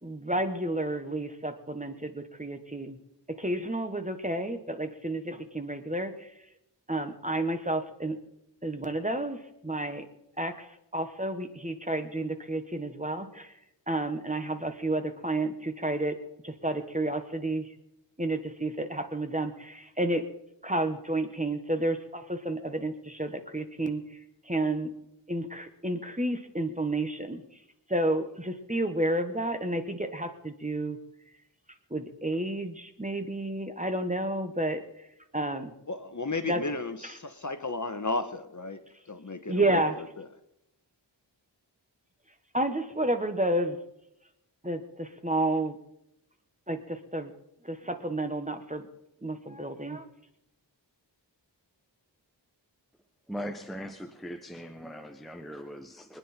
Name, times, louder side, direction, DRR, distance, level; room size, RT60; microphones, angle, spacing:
voice 1, 0.0-3.0 3.3-6.3 6.9-8.2 8.6-10.0 10.4-13.5 13.9-16.2 16.4-17.7 18.2-20.2 20.6-24.2 24.4-24.9 25.3-27.4 27.9-31.0 31.9-35.1 35.3-35.7 36.4-36.6 37.0-37.1 39.5-39.9 42.5-43.8 44.6-45.8 46.7-47.3 47.6-48.9 49.2-50.1, right 1 dB, 15° right, 7 dB, 1.5 m, -31 dB
voice 2, 35.9-38.8 39.1-39.8 40.2-40.3, left 3 dB, 40° left, 9 dB, 1.3 m, -33 dB
voice 3, 53.3-56.2, equal, ahead, 6 dB, 1.0 m, -40 dB
24.5 x 9.9 x 4.4 m, 0.82 s
wide cardioid pair, 60°, 44 cm